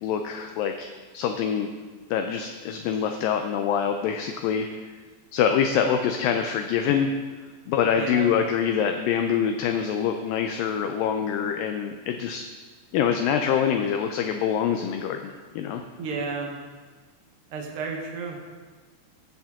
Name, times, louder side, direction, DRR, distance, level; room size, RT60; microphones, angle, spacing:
voice 1, 0.0-0.9 1.1-1.7 2.1-4.7 5.3-7.1 7.7-12.4 12.9-15.8, left 8 dB, 80° left, 5 dB, 2.1 m, -25 dB
voice 2, 8.0-8.3 16.0-16.5 17.5-18.6, right 4 dB, 65° right, 1 dB, 1.3 m, -32 dB
15.5 x 7.3 x 3.7 m, 1.4 s
omnidirectional pair, 4.3 m